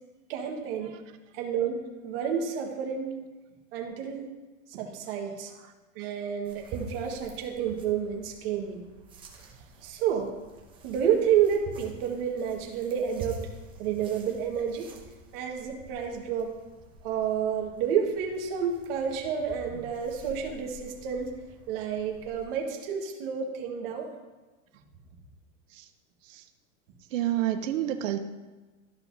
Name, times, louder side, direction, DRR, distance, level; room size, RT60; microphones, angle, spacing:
voice 1, 0.3-0.9 1.3-3.1 3.7-4.3 4.7-5.5 5.9-8.9 9.8-10.4 10.8-13.5 13.8-14.9 15.3-16.5 17.0-21.3 21.7-24.1, right 8 dB, 45° right, 1 dB, 1.5 m, -30 dB
sound 1, 6.4-22.4, right 2 dB, 15° right, 0.7 m, -47 dB
voice 2, 27.1-28.2, right 12 dB, 75° right, 7 dB, 0.8 m, -28 dB
13.0 x 5.8 x 2.7 m, 1.2 s
supercardioid pair, 165°, 39 cm